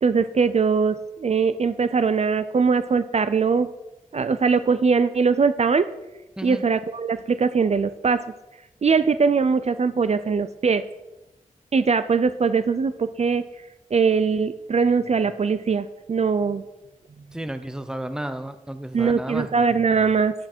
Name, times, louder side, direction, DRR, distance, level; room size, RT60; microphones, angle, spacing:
voice 1, 0.0-3.7 4.1-5.9 6.4-8.2 8.8-10.8 11.7-13.4 13.9-16.6 18.9-20.3, right 5 dB, 50° right, 12 dB, 0.4 m, -21 dB
voice 2, 17.3-19.5, right 1 dB, 5° right, 10 dB, 0.7 m, -32 dB
10.0 x 8.5 x 4.4 m, 0.98 s
wide cardioid pair, 110°, 14 cm